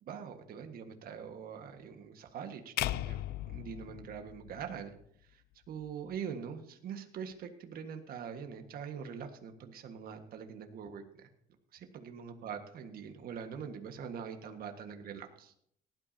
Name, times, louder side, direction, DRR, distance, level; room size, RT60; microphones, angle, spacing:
voice 1, 0.0-4.9 5.3-11.3 11.7-15.5, right 7 dB, 60° right, 5 dB, 1.7 m, -43 dB
sound 1, 2.8-5.0, left 15 dB, 70° left, 0.4 m, -37 dB
18.5 x 12.5 x 2.8 m, 0.67 s
cardioid pair, 110°, 17 cm